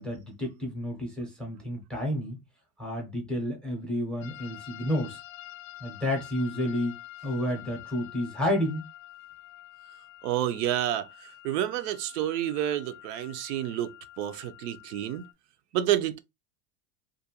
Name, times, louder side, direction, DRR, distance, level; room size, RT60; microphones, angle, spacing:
voice 1, 0.0-2.4 2.8-5.2 5.8-8.8, left 1 dB, ahead, 0.5 m, -30 dB
sound 1, 4.2-15.3, left 15 dB, 65° left, 0.5 m, -47 dB
voice 2, 10.2-13.9 14.2-15.2 15.7-16.2, right 12 dB, 80° right, 0.6 m, -29 dB
2.5 x 2.1 x 2.8 m
supercardioid pair, 145°, 46 cm